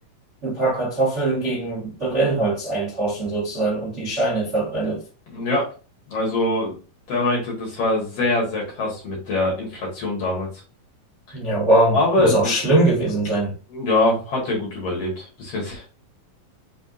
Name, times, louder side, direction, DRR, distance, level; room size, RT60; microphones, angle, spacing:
voice 1, 0.4-5.0 11.3-13.5, right 2 dB, 80° right, 0.6 m, -22 dB
voice 2, 5.3-5.7 6.1-6.8 7.1-10.5 11.3-11.4 11.9-12.5 13.7-15.9, left 2 dB, 55° left, 2.1 m, -23 dB
5.6 x 3.5 x 2.5 m
omnidirectional pair, 4.1 m